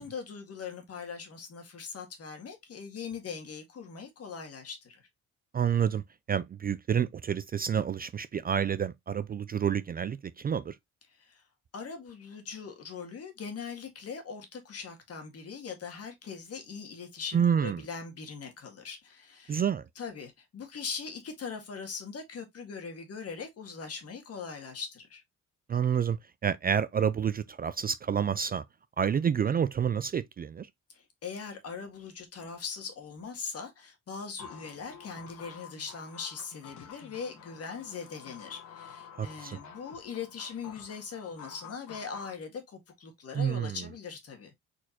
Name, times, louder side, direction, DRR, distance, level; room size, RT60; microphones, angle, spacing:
voice 1, 0.0-5.0 11.1-11.4 11.7-19.6 20.0-25.2 30.9-44.5, left 5 dB, 55° left, 1.8 m, -41 dB
voice 2, 5.5-10.8 17.3-17.8 19.5-19.9 25.7-26.2 26.4-28.6 29.0-30.7 39.2-39.6 43.3-43.8, right 8 dB, 30° right, 0.4 m, -29 dB
sound 1, 34.4-42.4, left 7 dB, 75° left, 1.3 m, -49 dB
4.3 x 4.3 x 2.8 m
cardioid pair, 90°, 30 cm